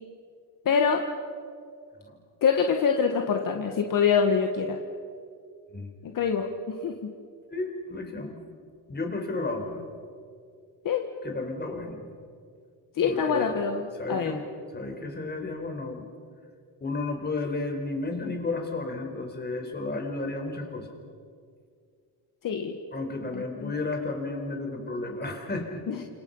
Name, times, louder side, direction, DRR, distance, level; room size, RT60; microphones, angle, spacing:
voice 1, 0.7-1.0 2.4-4.8 6.0-7.0 10.8-11.0 13.0-14.4 22.4-22.7 23.3-23.7 25.9-26.0, left 6 dB, 50° left, 4 dB, 1.9 m, -25 dB
voice 2, 7.5-8.4 8.9-9.8 11.2-12.1 13.0-13.5 14.0-14.4 14.7-16.0 16.8-20.9 22.9-25.8, left 3 dB, 25° left, 3 dB, 4.8 m, -32 dB
29.5 x 27.5 x 5.8 m, 2.2 s
cardioid pair, 130°, 41 cm